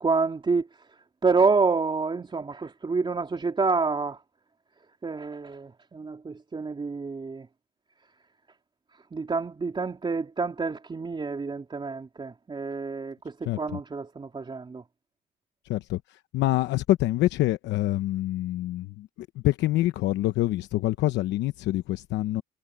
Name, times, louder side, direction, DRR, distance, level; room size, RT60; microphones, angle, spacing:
voice 1, 0.0-4.2 5.0-7.5 9.1-14.8, right 4 dB, 25° right, 3.8 m, -28 dB
voice 2, 16.3-18.9 19.4-22.4, left 16 dB, 80° left, 0.8 m, -25 dB
cardioid pair, 100°, 18 cm